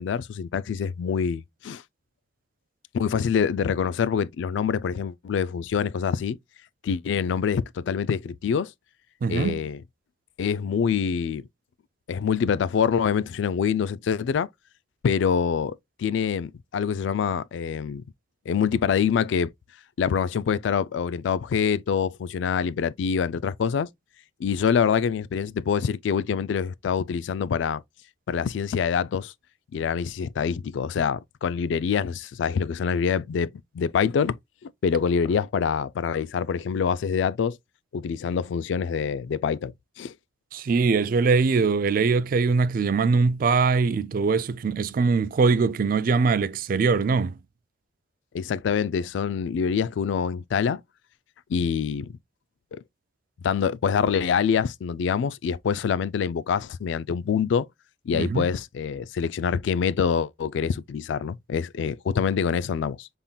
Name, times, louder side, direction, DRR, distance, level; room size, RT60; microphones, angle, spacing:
voice 1, 0.0-1.8 2.9-6.4 6.8-8.7 9.3-9.8 10.4-11.5 12.1-14.5 15.0-18.0 18.5-19.5 20.0-23.9 24.4-27.8 28.3-29.3 29.7-34.4 34.6-37.6 37.9-40.1 48.3-50.8 51.5-52.1 52.7-52.8 53.4-57.7 58.1-63.1, left 7 dB, 70° left, 0.3 m, -25 dB
voice 2, 9.2-9.6 40.5-47.3 58.1-58.5, right 4 dB, 45° right, 0.3 m, -22 dB
5.6 x 3.5 x 2.2 m
head